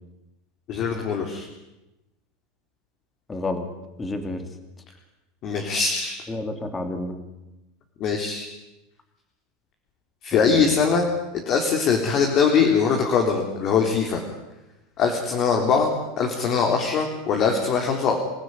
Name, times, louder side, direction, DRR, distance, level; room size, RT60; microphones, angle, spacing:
voice 1, 0.7-1.5 5.4-6.2 8.0-8.5 10.2-14.2 15.0-18.2, left 5 dB, 40° left, 2 dB, 3.7 m, -22 dB
voice 2, 3.3-3.7 4.0-4.6 6.3-7.2 10.3-10.7, left 2 dB, 15° left, 7 dB, 3.0 m, -30 dB
27.0 x 15.5 x 9.8 m, 0.99 s
supercardioid pair, 145°, 0 cm